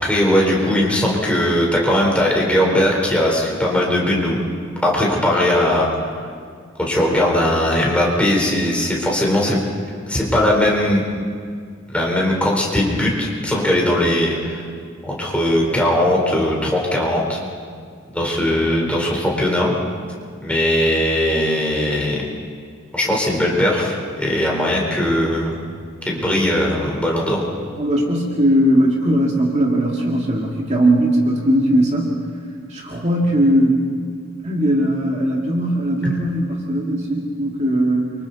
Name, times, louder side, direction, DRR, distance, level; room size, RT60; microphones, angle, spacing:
voice 1, 0.0-4.4 4.8-6.3 6.8-9.6 10.1-11.0 11.9-14.6 15.0-17.4 18.1-19.7 20.4-22.2 22.9-25.6 26.1-27.4, left 1 dB, 5° left, -3 dB, 4.1 m, -19 dB
voice 2, 27.8-32.2 32.7-33.8 34.4-38.1, right 1 dB, 35° right, -2 dB, 2.2 m, -19 dB
29.5 x 25.0 x 4.2 m, 2.1 s
head